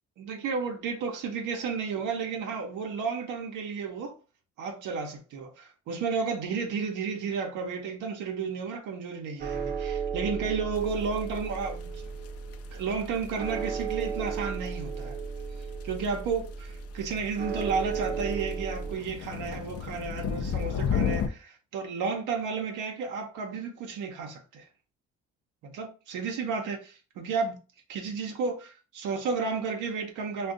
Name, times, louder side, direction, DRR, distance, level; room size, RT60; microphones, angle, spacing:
voice 1, 0.2-4.1 4.6-12.1 12.7-15.2 15.8-24.7 25.6-27.6 27.9-30.5, right 5 dB, 85° right, 0.7 m, -32 dB
sound 1, 9.4-19.0, right 6 dB, 35° right, 0.7 m, -34 dB
sound 2, 10.7-21.3, left 7 dB, 50° left, 0.4 m, -35 dB
2.5 x 2.3 x 3.6 m
cardioid pair, 90°, 30 cm